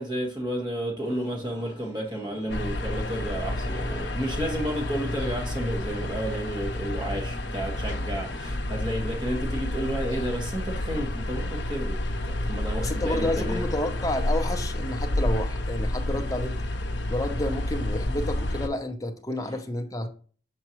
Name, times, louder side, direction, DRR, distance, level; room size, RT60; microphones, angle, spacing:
voice 1, 0.0-13.6 19.4-19.5, right 1 dB, 25° right, 1.6 m, -32 dB
sound 1, 1.0-7.3, left 1 dB, 5° right, 2.7 m, -48 dB
sound 2, 2.5-18.7, left 1 dB, 70° left, 0.8 m, -30 dB
voice 2, 12.8-16.5 17.1-20.1, left 1 dB, 20° left, 0.6 m, -30 dB
7.0 x 4.6 x 3.0 m
head